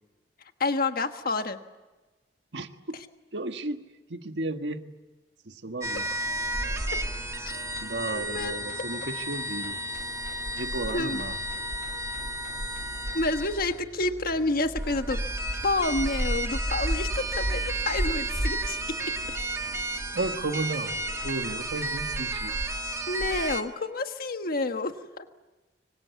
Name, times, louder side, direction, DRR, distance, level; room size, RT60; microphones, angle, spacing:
voice 1, 0.6-1.6 7.4-7.6 8.1-8.6 10.9-11.2 13.1-15.2 15.6-19.1 23.1-25.2, left 2 dB, 55° left, 7 dB, 1.3 m, -29 dB
voice 2, 2.5-3.0 3.3-3.8 4.1-4.8 5.4-6.0 7.8-9.8 10.6-11.4 20.1-22.6, right 2 dB, 85° right, 7 dB, 1.6 m, -33 dB
sound 1, 5.8-24.1, left 2 dB, 75° left, 3.0 m, -49 dB
sound 2, 5.8-13.8 14.7-23.6, right 1 dB, 15° right, 1.5 m, -31 dB
25.5 x 25.0 x 8.3 m, 1.2 s
head